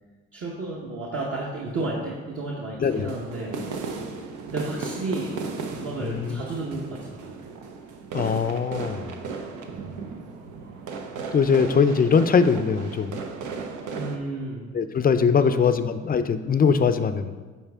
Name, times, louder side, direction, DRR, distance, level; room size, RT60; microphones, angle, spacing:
voice 1, 0.3-3.6 4.5-7.4 9.7-10.0 13.9-14.7 15.4-15.6, right 2 dB, 50° right, -4 dB, 1.1 m, -32 dB
sound 1, 2.9-14.2, right 4 dB, 90° right, 0.7 m, -36 dB
voice 2, 6.0-6.4 8.1-9.2 11.3-13.2 14.7-17.3, left 6 dB, 30° left, 10 dB, 0.4 m, -21 dB
9.0 x 4.2 x 3.5 m, 1.4 s
cardioid pair, 90°, 30 cm